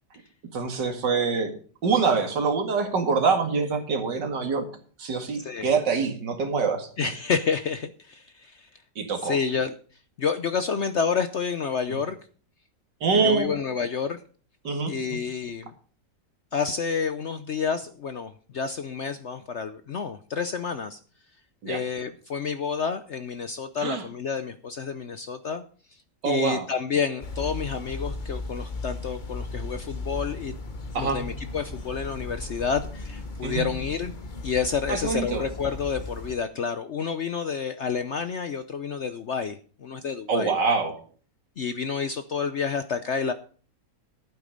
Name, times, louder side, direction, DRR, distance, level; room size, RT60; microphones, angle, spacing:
voice 1, 0.5-1.5 1.8-4.7 5.0-7.1 9.0-9.4 11.9-12.0 13.0-13.5 14.6-15.2 21.6-21.8 23.8-24.0 26.2-26.7 30.9-31.2 33.4-33.7 34.9-35.4 40.3-41.0, right 5 dB, 80° right, 5 dB, 2.6 m, -25 dB
voice 2, 5.4-5.7 7.0-8.7 9.2-9.7 10.2-12.2 13.1-14.2 14.9-15.7 16.5-21.0 21.7-25.6 26.2-30.5 30.9-34.1 34.4-40.5 41.6-43.3, left 6 dB, 60° left, 11 dB, 0.8 m, -29 dB
sound 1, 27.2-36.3, left 2 dB, 30° left, 1.1 m, -36 dB
12.0 x 9.2 x 5.2 m, 0.42 s
omnidirectional pair, 1.9 m